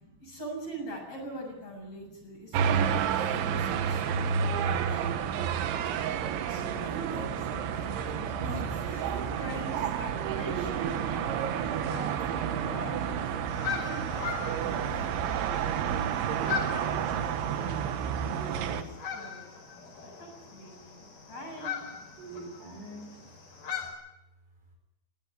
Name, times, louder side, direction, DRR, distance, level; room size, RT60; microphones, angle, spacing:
voice 1, 0.2-5.2 6.5-15.5 15.8-16.7 17.2-17.4 18.5-18.8 19.1-19.4 20.0-21.0 21.3-21.8, right 1 dB, 30° left, 1 dB, 8.1 m, -43 dB
voice 2, 1.9-2.6 3.3-4.6 6.5-7.1 9.7-11.6 16.5-17.9 18.2-19.3 19.6-20.0 20.6-21.4 21.9-23.1, right 3 dB, 60° right, 3 dB, 7.0 m, -46 dB
sound 1, 2.5-18.8, right 8 dB, 90° right, 3.8 m, -30 dB
sound 2, 13.5-23.9, left 7 dB, 55° left, 6.9 m, -40 dB
22.0 x 17.0 x 9.7 m, 0.93 s
omnidirectional pair, 5.2 m